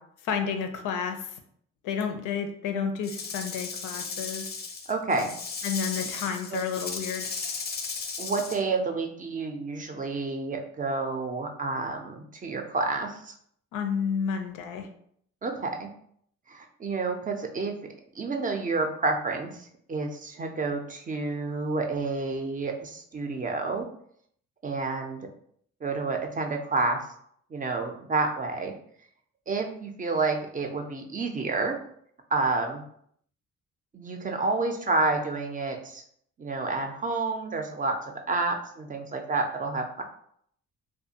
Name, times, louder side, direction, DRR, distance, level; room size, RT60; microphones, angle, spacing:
voice 1, 0.2-1.4 1.8-4.5 5.6-7.4 13.7-14.9, left 6 dB, 85° left, 7 dB, 0.5 m, -31 dB
Rattle / Rattle (instrument), 3.0-8.6, left 4 dB, 35° left, 0.5 m, -36 dB
voice 2, 4.9-5.3 6.0-6.1 6.5-6.6 8.2-13.3 15.4-15.9 16.5-17.7 18.1-23.9 24.6-25.3 25.8-27.0 27.5-28.7 29.5-31.8 32.3-32.8 33.9-36.0 36.4-40.0, right 3 dB, 25° right, 4 dB, 0.4 m, -29 dB
2.5 x 2.3 x 2.7 m, 0.66 s
cardioid pair, 90°, 30 cm